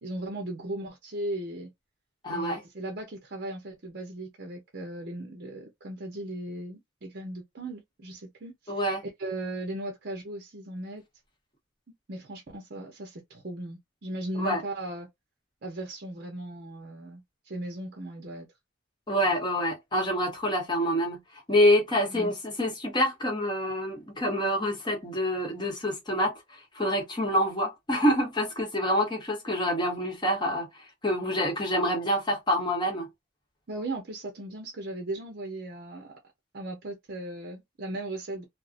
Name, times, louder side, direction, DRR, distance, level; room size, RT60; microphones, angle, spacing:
voice 1, 0.0-1.7 2.3-8.5 9.2-11.0 12.1-15.1 15.6-18.5 22.0-22.3 33.7-36.2 36.5-38.5, right 1 dB, 55° right, 0.6 m, -37 dB
voice 2, 2.2-2.6 8.7-9.0 14.4-14.6 19.1-30.7 31.0-33.1, equal, 25° left, 0.9 m, -27 dB
2.5 x 2.0 x 2.4 m
head